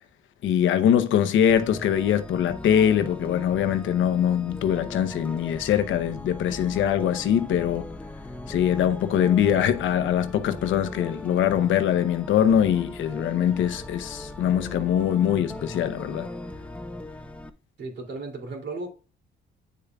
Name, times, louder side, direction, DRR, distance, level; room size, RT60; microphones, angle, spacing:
voice 1, 0.4-7.8 8.5-16.3, left 9 dB, 75° left, 0.8 m, -23 dB
sound 1, 1.5-17.5, left 1 dB, 5° left, 0.7 m, -39 dB
voice 2, 17.8-18.9, right 3 dB, 65° right, 2.8 m, -35 dB
8.6 x 6.8 x 2.4 m
cardioid pair, 90°, 20 cm